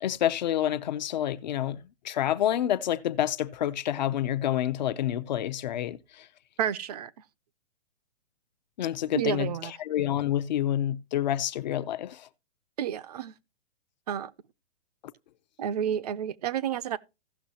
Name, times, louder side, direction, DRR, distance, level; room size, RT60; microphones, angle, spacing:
voice 1, 0.0-6.0 8.8-9.5 9.9-12.2, left 11 dB, 45° left, 0.6 m, -28 dB
voice 2, 6.6-7.1 9.1-9.7 12.8-13.3 14.1-14.3 15.6-17.0, right 9 dB, 40° right, 0.5 m, -30 dB
16.0 x 6.1 x 2.8 m
hypercardioid pair, 160°, 32 cm